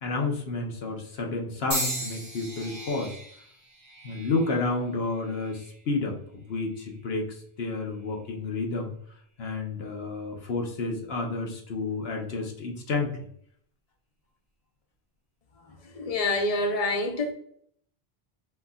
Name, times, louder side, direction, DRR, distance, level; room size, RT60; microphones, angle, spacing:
voice 1, 0.0-3.2 4.0-8.9 9.4-13.1, left 3 dB, 75° left, 1.2 m, -30 dB
sound 1, 1.7-5.8 6.5-7.0 7.9-8.1, right 1 dB, 25° right, 1.6 m, -37 dB
voice 2, 15.9-17.3, left 2 dB, 40° left, 0.8 m, -26 dB
4.3 x 4.0 x 2.3 m
omnidirectional pair, 1.0 m